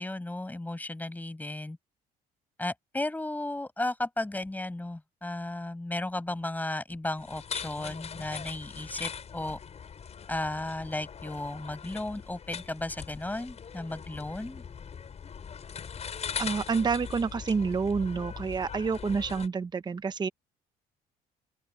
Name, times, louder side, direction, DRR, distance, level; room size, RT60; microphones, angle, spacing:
voice 1, 0.0-1.8 2.6-9.6 10.3-14.6, left 2 dB, 10° left, 5.7 m, -34 dB
sound 1, 7.2-19.5, left 7 dB, 40° left, 6.6 m, -41 dB
voice 2, 16.4-20.3, right 5 dB, 25° right, 0.9 m, -28 dB
open air
cardioid pair, 110°, 17 cm